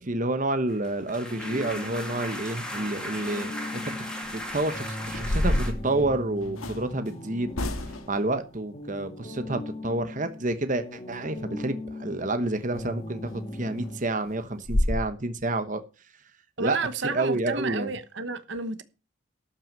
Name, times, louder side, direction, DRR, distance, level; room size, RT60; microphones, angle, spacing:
voice 1, 0.0-7.5 8.1-15.8 16.6-16.8 17.0-17.9, right 2 dB, 35° right, 1.0 m, -29 dB
sound 1, 0.7-5.7, equal, 5° left, 2.3 m, -37 dB
sound 2, 1.3-14.0, left 1 dB, 30° left, 1.7 m, -40 dB
sound 3, 4.2-4.5 5.0-6.8 7.5-8.2 12.7-12.8 13.3-13.4 13.8-13.9 14.3-14.4 14.6-15.0, left 1 dB, 85° left, 1.7 m, -28 dB
voice 2, 16.6-18.8, right 3 dB, 60° right, 1.1 m, -31 dB
13.0 x 6.0 x 7.3 m
head